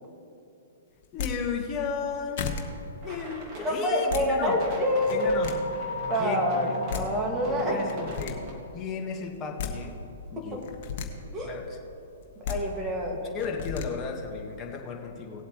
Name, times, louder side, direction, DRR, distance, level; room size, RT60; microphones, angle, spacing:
sound 1, 1.0-1.3 2.0-2.1 2.4-2.6 3.8-4.2 5.0-5.5 6.6-6.7 6.9-7.0 7.9-8.3 9.3-9.7 10.6-11.1 12.2-12.6 13.4-13.9, left 9 dB, 50° left, 1.4 m, -33 dB
voice 1, 1.1-2.4 3.0-4.6 5.1-5.5 6.2-6.4 7.6-8.4 8.7-9.9 10.3-10.6 11.4-11.6 13.1-15.4, left 5 dB, 25° left, 0 dB, 1.8 m, -34 dB
sound 2, 3.0-8.5, right 1 dB, 40° right, 2.2 m, -43 dB
voice 2, 3.6-5.2 6.1-7.8 10.4-10.5 11.3-11.6 12.4-13.2, equal, 20° right, -1 dB, 2.3 m, -27 dB
sound 3, 4.7-8.7, left 4 dB, 80° left, 1.3 m, -39 dB
18.5 x 7.9 x 3.3 m, 2.8 s
hypercardioid pair, 125°, 0 cm